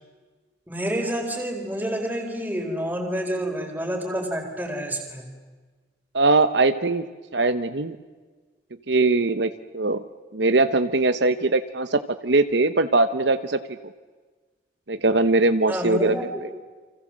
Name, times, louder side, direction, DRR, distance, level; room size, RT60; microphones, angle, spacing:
voice 1, 0.7-5.2 15.7-16.4, equal, 10° right, 3 dB, 4.3 m, -28 dB
voice 2, 6.1-7.0 7.3-8.0 8.9-10.0 10.3-13.6 14.9-16.1, right 3 dB, 70° right, 11 dB, 1.0 m, -21 dB
29.5 x 25.5 x 7.6 m, 1.4 s
head